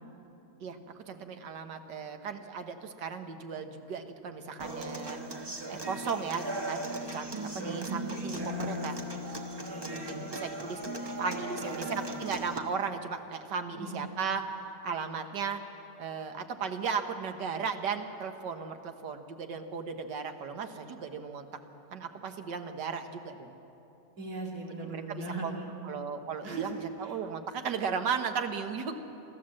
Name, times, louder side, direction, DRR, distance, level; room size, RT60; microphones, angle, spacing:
voice 1, 0.6-5.2 5.7-7.3 7.5-9.0 10.0-14.4 14.8-15.6 16.0-21.5 21.9-23.5 24.8-25.6 25.8-29.0, right 6 dB, 85° right, 7 dB, 1.8 m, -36 dB
Human voice / Acoustic guitar, 4.6-12.6, right 1 dB, 20° right, 1.0 m, -37 dB
voice 2, 7.4-7.9 9.6-10.4 11.2-11.3 11.6-12.0 13.7-13.9 24.2-25.7 26.4-26.7 27.0-27.2, right 3 dB, 60° right, -1 dB, 3.3 m, -39 dB
25.5 x 13.5 x 7.7 m, 2.9 s
omnidirectional pair, 1.8 m